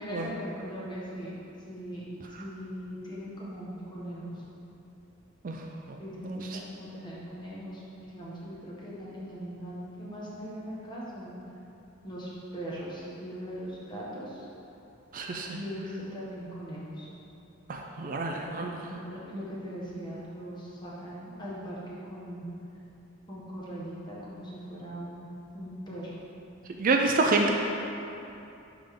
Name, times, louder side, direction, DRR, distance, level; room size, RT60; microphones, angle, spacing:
voice 1, 0.0-1.3 1.7-4.4 6.0-11.4 12.0-14.4 15.5-17.1 18.6-22.4 23.3-25.3 25.5-26.2, equal, 20° left, -7 dB, 1.4 m, -40 dB
voice 2, 6.2-6.6 15.1-15.6 17.7-18.7 26.8-27.5, right 3 dB, 40° right, 2 dB, 0.4 m, -27 dB
10.5 x 3.7 x 3.8 m, 2.9 s
head